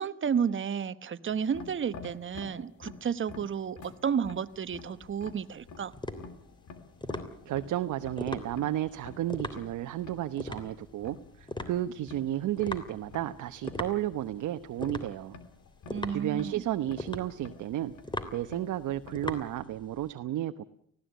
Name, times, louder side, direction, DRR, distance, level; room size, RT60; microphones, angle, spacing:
voice 1, 0.0-5.9 15.9-16.6, right 7 dB, 40° right, 12 dB, 1.1 m, -32 dB
sound 1, 1.3-19.6, left 4 dB, 75° left, 3.2 m, -50 dB
sound 2, 4.5-20.1, left 1 dB, 15° left, 3.2 m, -41 dB
voice 2, 7.5-15.4 16.1-17.9 18.3-20.6, right 13 dB, 80° right, 8 dB, 1.0 m, -32 dB
19.5 x 16.0 x 9.3 m, 0.67 s
cardioid pair, 90°, 30 cm